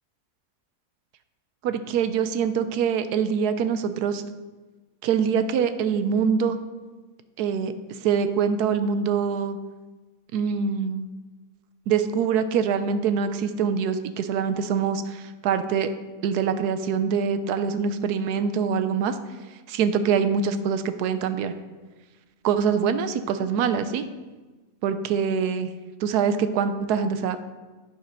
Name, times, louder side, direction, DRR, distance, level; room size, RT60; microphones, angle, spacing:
voice 1, 1.6-4.2 5.0-6.6 7.4-7.7 8.0-9.6 10.3-11.1 11.9-15.9 16.2-19.2 19.7-21.5 22.4-24.1 24.8-25.7 26.0-27.4, right 6 dB, 80° right, 10 dB, 1.2 m, -24 dB
11.0 x 4.4 x 5.1 m, 1.3 s
omnidirectional pair, 1.6 m